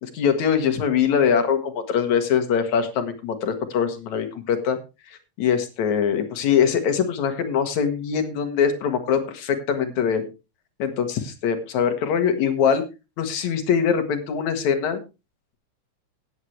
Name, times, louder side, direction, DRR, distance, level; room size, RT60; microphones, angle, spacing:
voice 1, 0.0-4.8 5.4-10.3 10.8-12.8 13.2-15.0, left 7 dB, 65° left, 7 dB, 3.0 m, -22 dB
16.5 x 9.7 x 3.3 m, 0.28 s
omnidirectional pair, 3.7 m